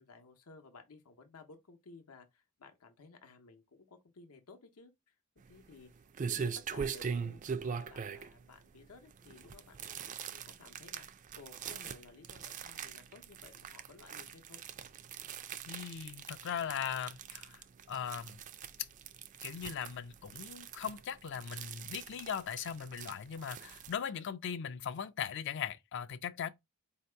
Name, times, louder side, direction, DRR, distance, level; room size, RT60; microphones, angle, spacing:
voice 1, 0.0-5.1 5.5-5.9 6.2-9.9 10.3-11.1 11.3-14.6, left 4 dB, 85° left, 0.7 m, -56 dB
sound 1, 5.4-23.9, right 6 dB, 35° right, 0.3 m, -42 dB
voice 2, 15.7-17.6 17.9-18.4 19.4-26.5, left 8 dB, 55° left, 0.4 m, -39 dB
4.4 x 2.8 x 3.2 m
head